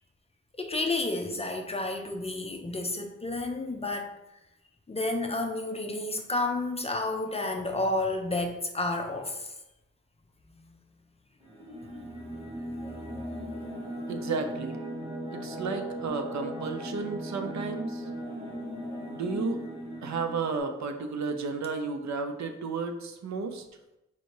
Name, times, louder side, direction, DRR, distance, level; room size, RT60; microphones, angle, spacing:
voice 1, 0.6-4.1 4.9-9.5 13.9-14.1, left 2 dB, 20° left, 3 dB, 0.5 m, -31 dB
sound 1, 11.4-20.6, right 1 dB, 20° right, 1.5 m, -38 dB
voice 2, 14.1-14.8 15.3-18.0 19.1-19.6 20.0-23.6, right 4 dB, 70° right, 6 dB, 0.6 m, -33 dB
4.2 x 2.7 x 4.6 m, 0.92 s
wide cardioid pair, 140°, 29 cm